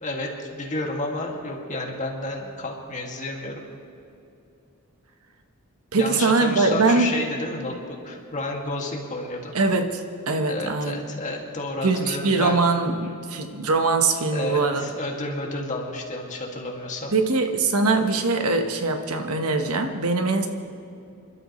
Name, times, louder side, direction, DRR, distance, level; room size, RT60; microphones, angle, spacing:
voice 1, 0.0-3.6 5.9-9.5 10.5-12.6 14.3-17.1, left 2 dB, 35° left, 0 dB, 2.3 m, -31 dB
voice 2, 5.9-7.1 9.5-11.2 11.8-14.8 17.1-20.5, right 3 dB, 85° right, 5 dB, 1.3 m, -22 dB
28.5 x 12.5 x 3.2 m, 2.7 s
head